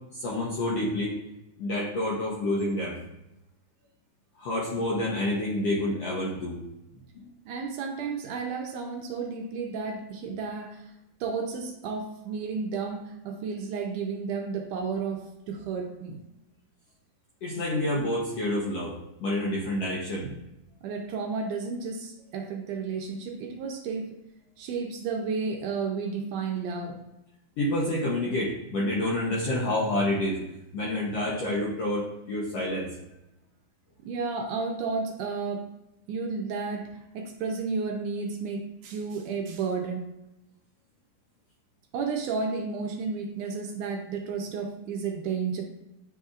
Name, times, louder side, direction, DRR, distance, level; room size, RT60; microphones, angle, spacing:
voice 1, 0.1-1.1 1.6-3.0 4.4-6.6 17.4-20.3 27.6-30.4 30.7-32.9, left 1 dB, 75° left, -4 dB, 1.5 m, -28 dB
voice 2, 7.5-10.8 11.2-16.2 20.2-20.3 20.8-24.1 24.6-27.0 34.0-35.7 36.1-40.1 41.9-45.6, right 5 dB, 75° right, 2 dB, 2.0 m, -32 dB
10.0 x 4.1 x 2.5 m, 0.92 s
omnidirectional pair, 4.0 m